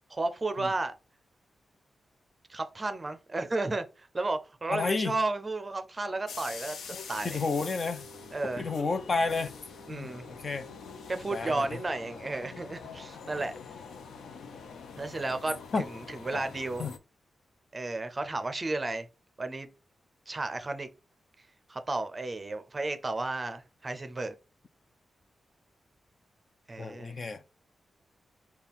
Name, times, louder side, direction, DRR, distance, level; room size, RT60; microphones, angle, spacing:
voice 1, 0.2-0.9 2.5-6.8 7.1-7.4 8.3-8.7 9.9-10.2 11.1-13.5 15.0-16.9 17.7-19.1 19.4-19.7 20.3-20.9 21.7-24.3 26.7-27.2, right 2 dB, 20° right, 0.6 m, -33 dB
voice 2, 4.7-5.2 6.9-8.0 8.6-9.5 9.9-10.7 11.3-11.7 15.7-15.8 16.3-16.4 16.8-16.9 26.8-27.4, left 4 dB, 35° left, 0.4 m, -31 dB
sound 1, 6.3-17.0, left 5 dB, 85° left, 0.6 m, -45 dB
5.3 x 2.3 x 4.1 m
wide cardioid pair, 165°, 0 cm